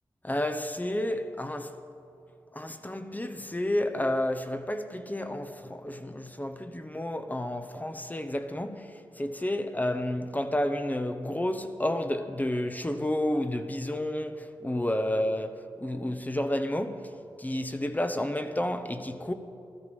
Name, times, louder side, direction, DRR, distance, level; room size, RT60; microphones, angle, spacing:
voice 1, 0.2-1.7 2.5-19.3, left 1 dB, 20° left, 1.0 m, -31 dB
14.5 x 13.5 x 5.4 m
cardioid pair, 50°, 9 cm